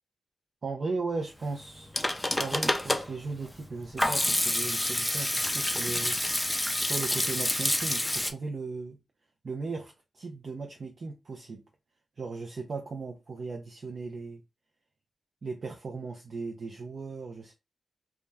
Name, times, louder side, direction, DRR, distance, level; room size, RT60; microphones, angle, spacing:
voice 1, 0.6-2.0 2.4-6.2 6.8-9.0 9.4-11.6 12.2-14.4 15.4-17.5, right 4 dB, 55° right, 0.4 m, -37 dB
Hands / Sink (filling or washing), 1.6-8.3, left 1 dB, 10° left, 0.4 m, -28 dB
2.2 x 2.1 x 3.3 m
cardioid pair, 60°, 0 cm